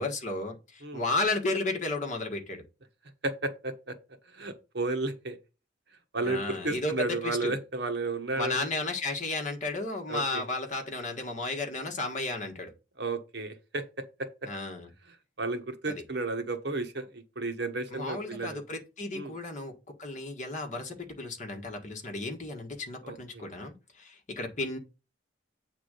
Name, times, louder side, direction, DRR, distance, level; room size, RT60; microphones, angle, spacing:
voice 1, 0.0-2.6 6.2-7.5 8.3-12.7 14.5-14.9 15.8-15.9 17.9-24.8, left 2 dB, 40° left, 1.6 m, -33 dB
voice 2, 3.2-4.0 4.3-5.4 6.1-8.6 10.1-10.4 13.0-13.8 14.2-14.3 15.1-18.6 19.1-19.3 23.0-23.5, right 3 dB, 60° right, 1.2 m, -33 dB
8.4 x 3.7 x 6.5 m
head